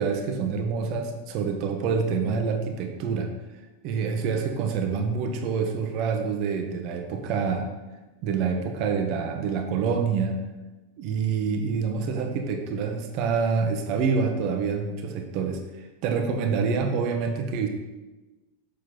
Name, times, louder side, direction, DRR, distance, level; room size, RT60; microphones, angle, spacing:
voice 1, 0.0-3.3 3.8-7.7 8.2-10.4 11.0-17.7, right 5 dB, 40° right, 4 dB, 0.9 m, -27 dB
6.8 x 6.2 x 4.0 m, 1.1 s
figure-of-eight pair, 90°, 0 cm